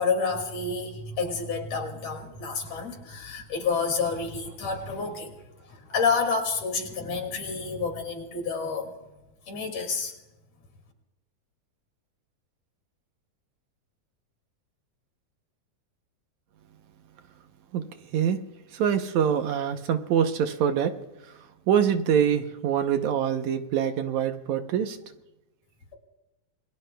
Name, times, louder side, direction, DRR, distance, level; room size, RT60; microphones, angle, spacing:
voice 1, 0.0-5.4 5.6-8.9 9.5-10.1, left 4 dB, 55° left, 4 dB, 3.3 m, -29 dB
voice 2, 18.7-20.9 21.7-25.0, right 8 dB, 70° right, 7 dB, 2.1 m, -24 dB
27.5 x 22.5 x 2.3 m, 0.98 s
omnidirectional pair, 3.6 m